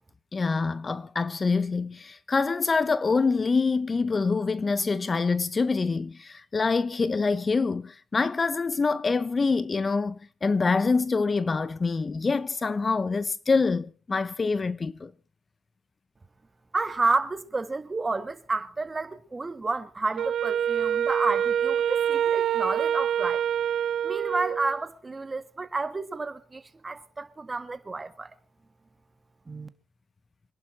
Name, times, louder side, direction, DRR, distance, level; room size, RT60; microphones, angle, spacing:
voice 1, 0.3-15.1, left 4 dB, 30° left, 0.8 m, -25 dB
voice 2, 16.7-23.4 24.0-28.3 29.5-29.7, right 3 dB, 25° right, 1.8 m, -30 dB
Wind instrument woodwind instrument, 20.2-24.8, right 9 dB, 65° right, 0.8 m, -26 dB
26.0 x 11.0 x 4.5 m
cardioid pair, 90°, 0 cm